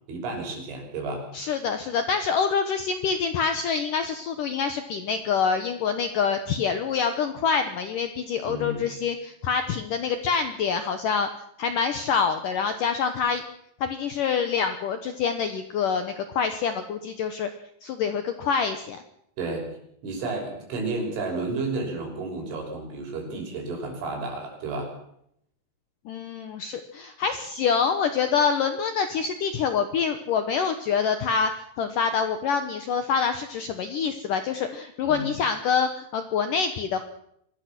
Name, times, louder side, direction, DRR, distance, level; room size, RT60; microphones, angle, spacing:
voice 1, 0.1-1.3 8.4-8.9 19.4-19.7 20.0-24.9 35.0-35.3, right 3 dB, 85° right, 2 dB, 8.4 m, -31 dB
voice 2, 1.3-11.3 11.6-13.4 13.8-17.5 17.8-19.0 26.1-31.5 31.8-37.0, left 6 dB, 75° left, 8 dB, 2.0 m, -26 dB
25.0 x 20.0 x 6.1 m, 0.73 s
omnidirectional pair, 5.3 m